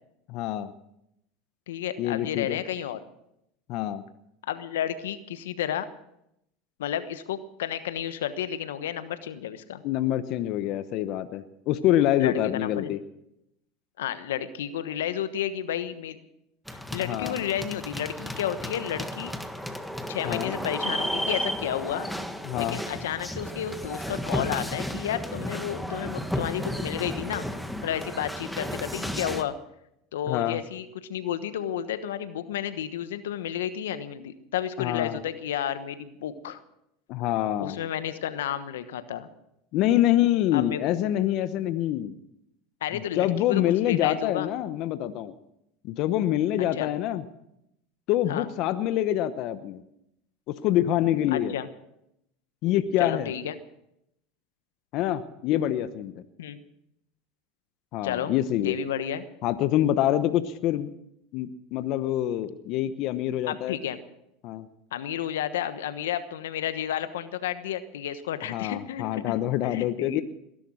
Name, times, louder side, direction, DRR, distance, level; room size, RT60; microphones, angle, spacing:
voice 1, 0.3-0.7 2.0-2.6 3.7-4.0 9.8-13.0 17.0-17.4 20.2-20.6 22.4-22.8 30.3-30.6 34.8-35.2 37.1-37.8 39.7-42.1 42.9-45.3 45.8-47.2 48.1-49.8 50.5-51.5 52.6-53.3 54.9-56.2 57.9-58.8 59.4-60.9 61.3-63.8 64.4-64.7 68.5-70.2, left 12 dB, 60° left, 12 dB, 0.9 m, -26 dB
voice 2, 1.7-3.0 4.5-5.9 6.8-9.8 12.2-12.9 14.0-16.2 16.9-19.3 20.1-22.1 22.6-27.5 27.8-29.5 30.1-36.6 37.6-39.3 40.5-40.8 42.8-43.6 43.9-44.5 46.7-46.9 48.3-48.5 51.3-51.7 53.0-53.5 56.4-56.6 58.0-58.3 58.6-59.3 63.5-64.0 64.9-70.2, left 10 dB, 85° left, 12 dB, 1.2 m, -31 dB
sound 1, 16.7-29.4, equal, ahead, 1.5 m, -33 dB
20.0 x 11.5 x 6.3 m, 0.80 s
hypercardioid pair, 100°, 0 cm